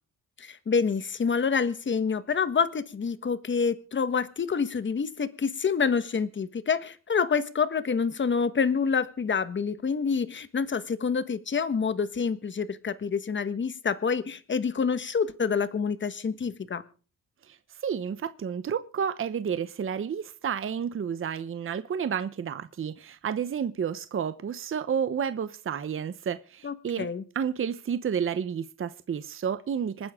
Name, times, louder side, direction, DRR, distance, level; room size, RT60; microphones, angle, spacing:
voice 1, 0.4-16.8 26.6-27.2, left 6 dB, 35° left, 13 dB, 1.4 m, -27 dB
voice 2, 17.8-27.1 27.3-30.1, right 7 dB, 40° right, 12 dB, 0.9 m, -31 dB
26.5 x 9.8 x 3.7 m, 0.38 s
cardioid pair, 130°, 33 cm